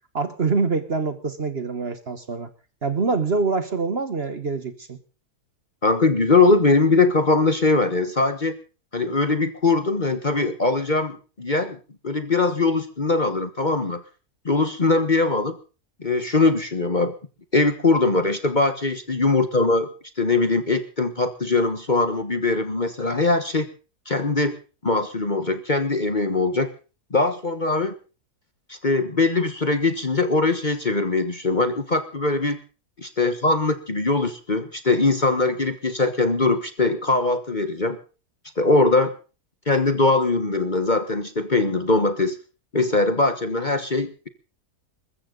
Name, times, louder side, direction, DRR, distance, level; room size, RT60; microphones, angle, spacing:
voice 1, 0.1-2.5 2.8-5.0, right 4 dB, 40° right, 11 dB, 1.4 m, -25 dB
voice 2, 5.8-8.6 8.9-11.8 12.0-14.0 14.4-15.6 16.0-17.1 17.5-19.9 20.2-23.7 24.1-24.6 24.8-26.7 27.1-28.0 28.7-32.6 33.0-38.0 38.6-39.1 39.7-42.4 42.7-44.3, left 3 dB, 30° left, 10 dB, 1.3 m, -21 dB
21.5 x 14.0 x 3.9 m, 0.35 s
omnidirectional pair, 1.7 m